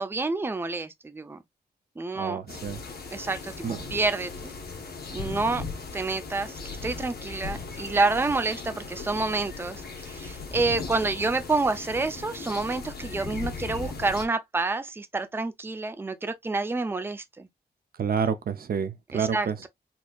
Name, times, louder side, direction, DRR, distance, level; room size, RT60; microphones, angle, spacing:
voice 1, 0.0-1.4 2.0-2.4 3.1-4.5 5.1-5.6 5.9-17.5 19.1-19.7, right 3 dB, 15° right, 0.5 m, -28 dB
voice 2, 2.2-2.8 3.6-3.8 18.0-19.7, right 7 dB, 65° right, 0.5 m, -29 dB
sound 1, 2.5-14.3, left 4 dB, 70° left, 1.2 m, -38 dB
4.2 x 2.8 x 2.3 m
wide cardioid pair, 120°, 17 cm